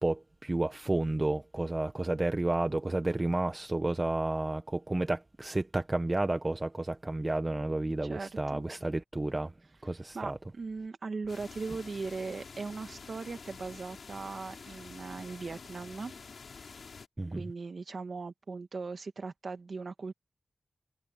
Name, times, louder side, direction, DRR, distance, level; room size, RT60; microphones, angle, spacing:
voice 1, 0.0-9.5 9.8-10.4 17.2-17.4, right 2 dB, 20° right, 0.9 m, -31 dB
voice 2, 8.0-8.6 10.1-16.1 17.3-20.1, right 4 dB, 50° right, 2.3 m, -39 dB
sound 1, 11.3-17.1, left 5 dB, 60° left, 6.3 m, -48 dB
wide cardioid pair, 145°, 0 cm